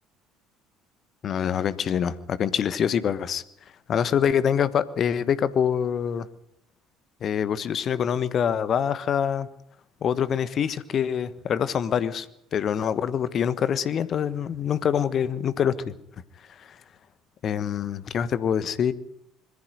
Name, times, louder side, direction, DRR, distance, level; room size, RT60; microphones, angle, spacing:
voice 1, 1.2-3.4 3.9-6.3 7.2-9.5 10.0-12.3 12.5-15.9 17.4-18.9, left 8 dB, 45° left, 15 dB, 1.3 m, -25 dB
21.5 x 15.0 x 9.2 m, 0.76 s
figure-of-eight pair, 55°, 0 cm